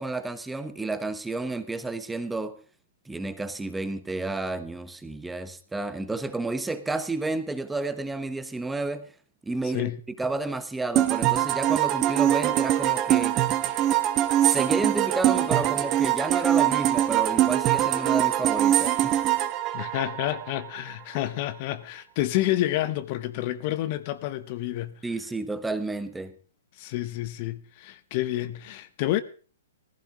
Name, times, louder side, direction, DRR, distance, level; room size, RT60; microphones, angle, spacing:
voice 1, 0.0-2.6 3.1-9.1 9.4-13.4 14.4-19.2 25.0-26.3, right 2 dB, 5° right, 1.0 m, -31 dB
sound 1, 11.0-20.7, right 12 dB, 30° right, 1.1 m, -23 dB
voice 2, 19.7-24.9 26.8-29.2, left 14 dB, 40° left, 0.9 m, -29 dB
17.5 x 15.0 x 3.8 m
figure-of-eight pair, 120°, 0 cm